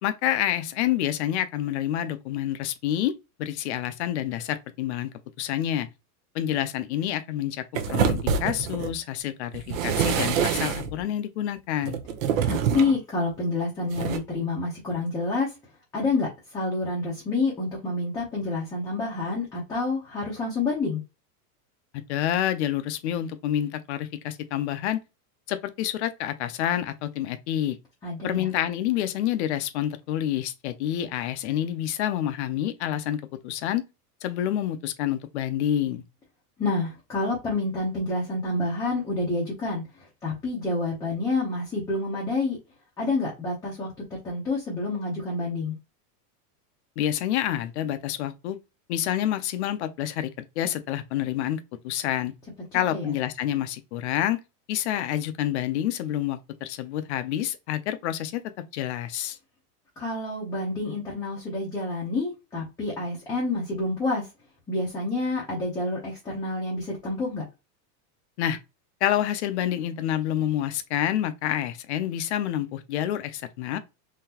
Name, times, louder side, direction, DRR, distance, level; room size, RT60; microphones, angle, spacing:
voice 1, 0.0-3.1 3.4-5.1 5.4-5.9 6.3-12.0 21.9-25.0 25.5-27.8 28.2-33.8 34.2-36.0 47.0-48.6 48.9-52.3 52.7-54.4 54.7-58.4 58.7-59.4 68.4-68.6 69.0-73.8, left 11 dB, 50° left, 0.6 m, -28 dB
sound 1, 7.7-8.9 9.5-11.0 11.8-13.0 13.9-14.2, right 7 dB, 60° right, 0.9 m, -26 dB
voice 2, 12.5-15.5 15.9-21.0 28.0-28.5 36.6-42.6 43.0-43.9 44.2-45.8 52.7-53.1 60.0-64.3 64.7-67.4, left 3 dB, 10° left, 0.7 m, -28 dB
3.9 x 2.9 x 2.8 m
supercardioid pair, 180°, 46 cm